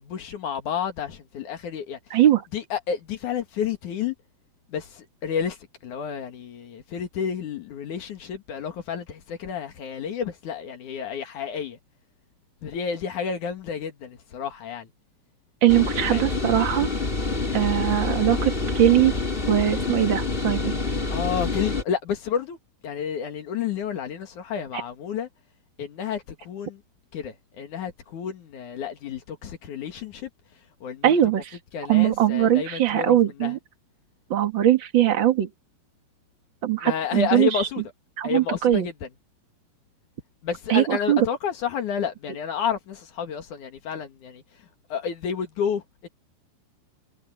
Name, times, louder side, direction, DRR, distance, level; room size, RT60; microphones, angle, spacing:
voice 1, 0.0-2.2 2.5-4.1 4.7-11.8 12.6-14.9 16.1-16.2 17.5-17.6 21.1-22.6 22.8-25.3 25.8-26.8 27.1-30.3 30.8-31.4 31.7-33.6 36.8-37.8 38.2-39.1 40.4-46.1, left 7 dB, 55° left, 2.7 m, -30 dB
voice 2, 2.1-2.4 15.6-16.9 17.5-19.1 19.5-20.7 31.0-31.5 31.9-33.6 34.3-35.5 36.6-37.5 38.2-38.9 40.7-41.3, right 12 dB, 70° right, 1.1 m, -21 dB
sound 1, 15.7-21.8, left 3 dB, 15° left, 2.0 m, -27 dB
omnidirectional pair, 5.2 m